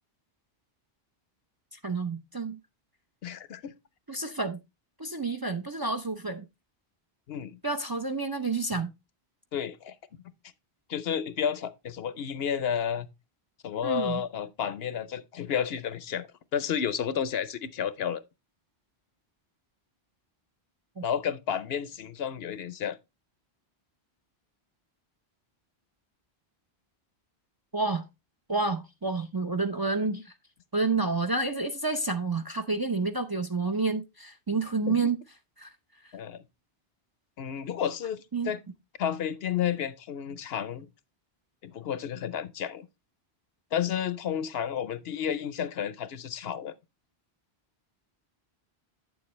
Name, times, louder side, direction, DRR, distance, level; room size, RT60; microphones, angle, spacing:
voice 1, 1.8-2.6 4.1-4.6 5.0-6.4 7.6-8.9 13.8-14.2 21.0-21.1 27.7-28.0 28.5-30.3 30.7-35.2 35.6-35.7 38.3-38.5, right 3 dB, 25° right, 0.5 m, -29 dB
voice 2, 3.2-3.7 7.3-7.6 8.7-8.8 9.5-9.9 10.9-13.1 13.6-18.2 21.0-23.0 34.9-35.1 36.1-36.4 37.4-38.6 39.0-40.9 41.6-42.9 43.7-46.7, left 8 dB, 70° left, 0.9 m, -31 dB
9.1 x 7.1 x 3.1 m
omnidirectional pair, 1.1 m